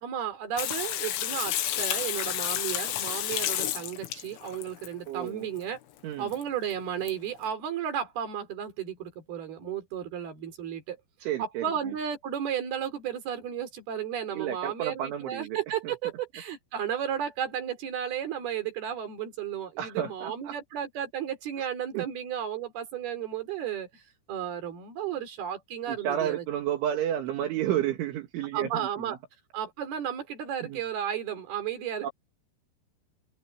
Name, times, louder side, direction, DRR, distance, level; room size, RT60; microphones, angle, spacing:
voice 1, 0.0-5.8 6.2-11.0 11.4-24.0 24.3-26.5 28.5-29.2 29.5-32.1, right 9 dB, 55° right, 5.5 m, -33 dB
Water tap faucet / Sink (filling or washing), 0.6-4.9 6.3-6.4 6.7-6.8 7.1-7.2, left 12 dB, 80° left, 4.2 m, -31 dB
voice 2, 5.1-5.5 6.0-6.3 11.2-11.6 14.3-15.6 15.8-15.9 19.8-20.6 21.9-22.0 25.9-29.2 30.6-30.8 32.0-32.1, right 11 dB, 75° right, 4.4 m, -31 dB
open air
omnidirectional pair, 5.6 m